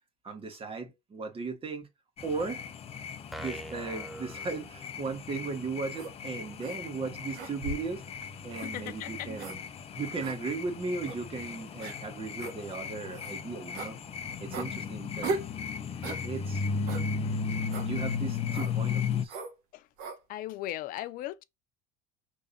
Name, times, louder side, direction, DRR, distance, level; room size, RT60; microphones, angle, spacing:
voice 1, 0.2-1.9 2.2-2.6 3.4-8.0 8.4-9.6 10.0-14.0 14.4-15.4 16.2-16.6 17.8-19.4, right 4 dB, 30° right, 1.7 m, -36 dB
sound 1, 2.2-19.2, left 6 dB, 35° left, 0.8 m, -36 dB
sound 2, 3.3-5.2, right 1 dB, ahead, 0.5 m, -44 dB
sound 3, 5.9-6.1 6.6-6.8 7.3-7.9 8.5-8.7 9.4-9.6 10.2-10.4 11.0-11.2 11.8-12.0 12.4-12.6 13.1-13.3 13.7-13.9 14.5-14.7 15.2-15.5 16.0-16.2 16.9-17.1 17.7-17.9 18.5-18.7 19.3-19.5 20.0-20.2, right 3 dB, 65° right, 1.2 m, -37 dB
voice 2, 8.6-9.3 14.7-14.9 19.7-19.9 20.3-21.4, left 14 dB, 50° left, 0.4 m, -38 dB
5.3 x 3.3 x 2.8 m
hypercardioid pair, 85°, 18 cm